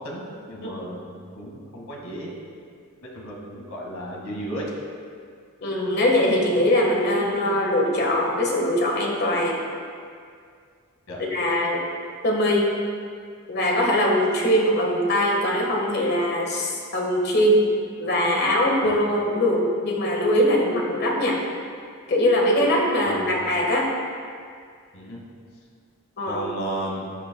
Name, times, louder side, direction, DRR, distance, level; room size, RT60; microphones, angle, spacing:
voice 1, 0.0-2.3 3.1-4.6 11.1-11.2 18.8-18.9 23.0-23.3 24.9-25.2 26.2-27.1, right 1 dB, 75° left, -2 dB, 2.0 m, -34 dB
voice 2, 5.6-9.6 11.3-11.8 12.2-12.7 13.5-17.6 18.0-21.4 22.1-23.9 26.2-26.4, left 1 dB, 50° left, -1 dB, 1.6 m, -21 dB
13.5 x 8.8 x 2.3 m, 2.2 s
head